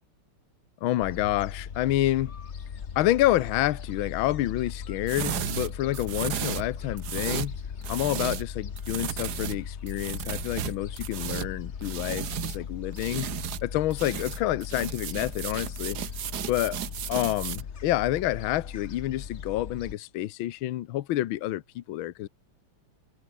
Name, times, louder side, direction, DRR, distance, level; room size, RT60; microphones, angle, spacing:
voice 1, 0.8-2.3 2.9-7.6 7.9-13.3 13.6-16.0 16.5-16.8 17.1-22.3, left 14 dB, 70° left, 1.6 m, -28 dB
Gull seagull, 1.0-19.9, left 7 dB, 40° left, 1.1 m, -38 dB
sound 1, 5.1-8.5 8.8-12.6 12.9-13.6 13.9-17.6, right 10 dB, 55° right, 1.3 m, -34 dB
omnidirectional pair, 2.4 m